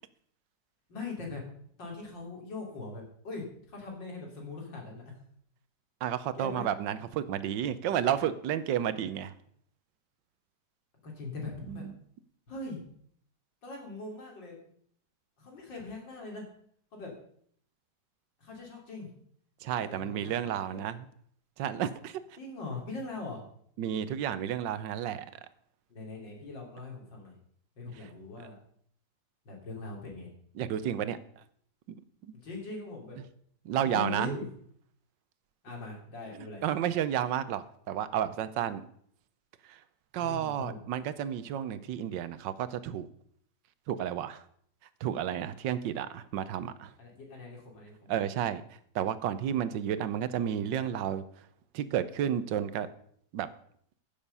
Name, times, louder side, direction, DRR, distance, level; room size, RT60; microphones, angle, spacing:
voice 1, 0.9-1.4 1.8-5.0 6.3-6.7 11.0-11.8 12.5-12.8 13.6-14.6 15.4-16.5 16.9-17.1 18.4-19.1 19.8-20.8 22.4-23.4 25.9-27.3 27.8-28.6 29.5-30.3 32.4-33.2 33.8-34.5 35.6-36.6 40.2-40.8 47.0-48.1, left 3 dB, 90° left, 0 dB, 4.0 m, -41 dB
voice 2, 6.0-9.3 11.7-11.9 19.6-21.1 21.6-22.2 23.8-25.3 30.6-31.2 31.9-32.3 33.6-34.4 36.6-38.8 39.7-39.8 40.1-43.1 43.9-44.4 45.0-46.9 48.1-48.6 48.9-51.2 51.7-52.9 53.3-53.5, right 10 dB, 85° right, 14 dB, 1.4 m, -31 dB
15.0 x 7.2 x 5.5 m, 0.64 s
omnidirectional pair, 1.9 m